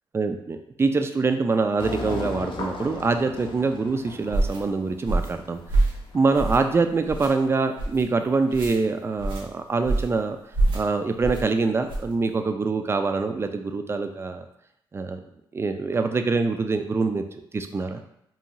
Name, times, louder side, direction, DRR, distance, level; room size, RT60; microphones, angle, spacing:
voice 1, 0.1-5.6 6.1-10.4 10.7-14.4 14.9-15.2 15.5-17.2 17.5-18.0, right 4 dB, 30° right, 7 dB, 0.3 m, -24 dB
sound 1, 1.8-7.4, left 3 dB, 65° left, 0.5 m, -37 dB
sound 2, 4.3-4.6 5.1-5.4 5.7-6.0 6.4-6.7 7.1-7.3 7.8-8.0 8.5-8.8 9.2-9.4 9.8-10.2 10.5-10.8 11.2-11.4 11.9-12.1, right 2 dB, 65° right, 0.8 m, -25 dB
2.6 x 2.3 x 2.9 m, 0.77 s
cardioid pair, 65°, 9 cm